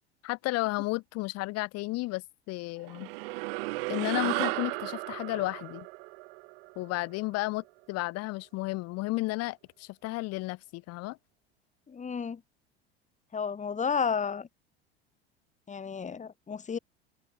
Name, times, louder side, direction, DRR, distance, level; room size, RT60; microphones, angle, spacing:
voice 1, 0.2-3.1 3.9-5.9 6.8-11.2, left 21 dB, 50° left, 2.0 m, -33 dB
sound 1, 2.9-7.6, right 25 dB, 60° right, 1.4 m, -35 dB
voice 2, 11.9-12.4 13.3-14.5 15.7-16.8, left 6 dB, 25° left, 2.6 m, -32 dB
figure-of-eight pair, 75°, 32 cm